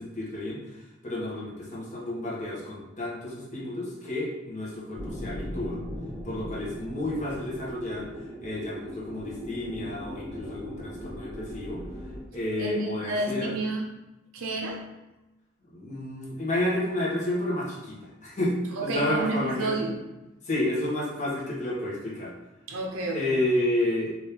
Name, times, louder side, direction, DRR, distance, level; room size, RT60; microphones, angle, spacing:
voice 1, 0.0-5.8 6.2-11.8 12.3-13.5 15.7-19.7 20.4-22.3 23.1-24.2, left 1 dB, 35° left, -6 dB, 1.0 m, -31 dB
sound 1, 4.9-12.2, equal, 20° right, 0.8 m, -39 dB
voice 2, 12.6-13.8 14.3-14.9 18.8-19.9 22.7-23.4, right 2 dB, 85° right, 0 dB, 0.5 m, -30 dB
3.5 x 2.6 x 2.8 m, 1.0 s
head